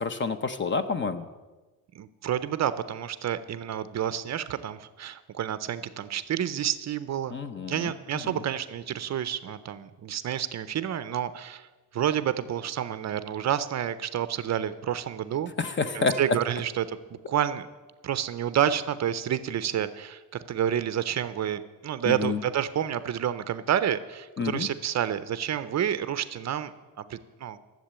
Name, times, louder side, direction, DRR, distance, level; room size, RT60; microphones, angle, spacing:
voice 1, 0.0-1.3 7.3-7.9 8.2-8.4 15.6-16.2 22.0-22.4 24.4-24.7, left 4 dB, 30° left, 11 dB, 0.6 m, -29 dB
voice 2, 1.9-7.3 7.7-11.7 11.9-15.5 15.9-17.7 18.0-27.6, right 10 dB, 45° right, 13 dB, 0.5 m, -29 dB
13.5 x 7.5 x 8.7 m, 1.2 s
cardioid pair, 180°, 40 cm